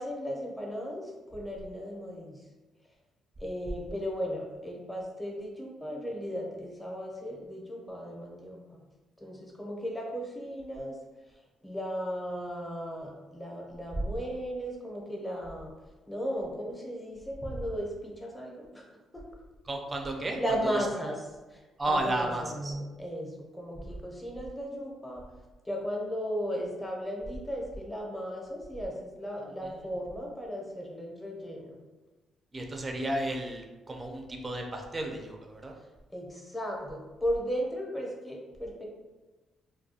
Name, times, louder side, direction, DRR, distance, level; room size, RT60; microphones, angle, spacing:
voice 1, 0.0-2.4 3.4-8.8 9.2-11.0 11.6-15.7 16.1-18.8 19.1-19.2 20.4-25.2 25.6-31.8 36.1-38.9, equal, 10° left, -1 dB, 0.7 m, -36 dB
voice 2, 19.7-20.4 21.8-22.7 29.6-30.0 32.5-35.7, right 1 dB, 25° right, 2 dB, 0.4 m, -33 dB
2.3 x 2.2 x 2.7 m, 1.2 s
cardioid pair, 90°, 0 cm